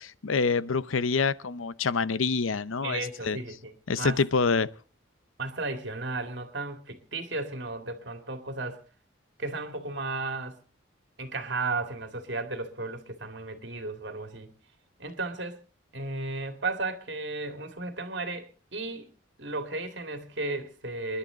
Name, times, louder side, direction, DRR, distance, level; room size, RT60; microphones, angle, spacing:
voice 1, 0.0-3.4 3.9-4.7, left 4 dB, 85° left, 0.7 m, -26 dB
voice 2, 2.8-4.2 5.4-8.8 9.4-10.6 11.2-14.5 15.0-15.6 15.9-19.1 19.4-21.2, right 3 dB, 60° right, 2.4 m, -34 dB
27.5 x 11.0 x 3.9 m
head